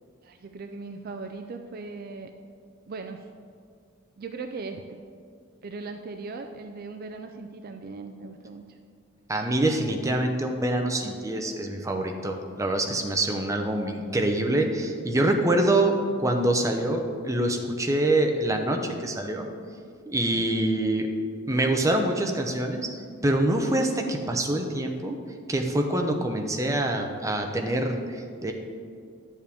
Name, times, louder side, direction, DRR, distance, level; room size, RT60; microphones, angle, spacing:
voice 1, 0.2-2.3 2.9-3.3 4.2-5.0 5.6-8.8, right 3 dB, 45° right, 6 dB, 0.4 m, -39 dB
voice 2, 9.3-19.5 20.1-21.1 21.5-25.2 25.5-28.5, right 1 dB, 15° right, 3 dB, 0.7 m, -25 dB
10.5 x 7.2 x 3.5 m, 2.2 s
head